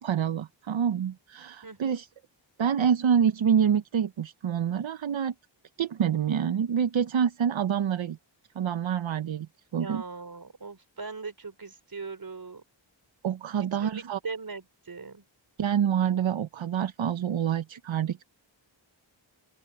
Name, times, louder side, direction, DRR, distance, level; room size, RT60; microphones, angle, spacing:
voice 1, 0.0-2.1 2.6-5.3 5.8-8.2 8.6-10.0 13.2-14.2 15.6-18.2, right 8 dB, 80° right, 0.8 m, -27 dB
voice 2, 1.6-2.0 9.7-12.6 13.8-15.2, right 4 dB, 50° right, 4.3 m, -40 dB
open air
wide cardioid pair, 95°, 45 cm